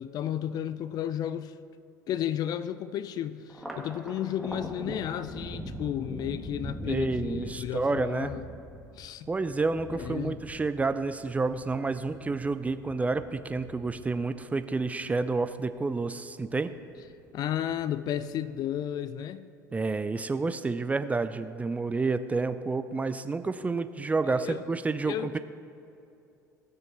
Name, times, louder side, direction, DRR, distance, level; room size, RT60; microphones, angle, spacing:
voice 1, 0.0-1.5 2.1-8.5 9.0-9.3 9.9-10.4 17.3-19.5 24.2-24.6 25.0-25.3, left 10 dB, 40° left, 14 dB, 0.4 m, -33 dB
Thunder, 3.5-16.2 16.5-17.4 17.7-18.5, right 1 dB, ahead, 1.6 m, -43 dB
voice 2, 6.9-8.3 9.3-16.7 19.7-25.4, right 3 dB, 15° right, 11 dB, 0.4 m, -29 dB
17.5 x 6.6 x 4.2 m, 2.7 s
figure-of-eight pair, 70°, 10 cm